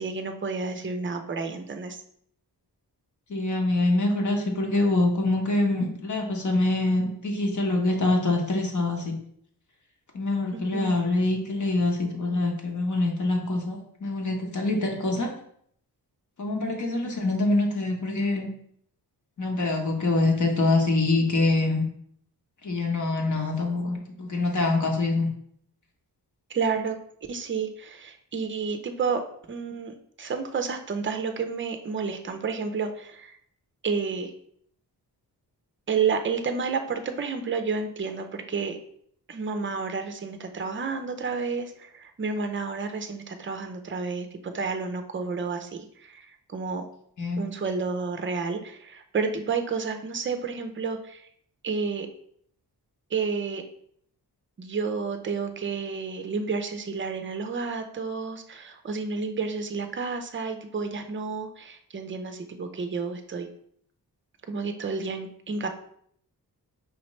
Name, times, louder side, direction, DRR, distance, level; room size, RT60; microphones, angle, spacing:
voice 1, 0.0-2.0 10.5-10.9 17.0-17.3 26.5-27.0 27.3-29.2 29.5-33.4 33.8-34.3 35.9-38.8 39.3-46.8 47.4-51.3 51.6-52.1 53.1-53.6 54.6-63.5 64.5-65.7, right 5 dB, 30° right, 6 dB, 0.5 m, -30 dB
voice 2, 3.3-9.2 10.1-15.3 16.4-18.5 19.4-21.8 22.6-25.3 47.2-47.4, left 2 dB, 45° left, 1 dB, 1.0 m, -25 dB
5.0 x 3.0 x 3.1 m, 0.66 s
wide cardioid pair, 100°, 40 cm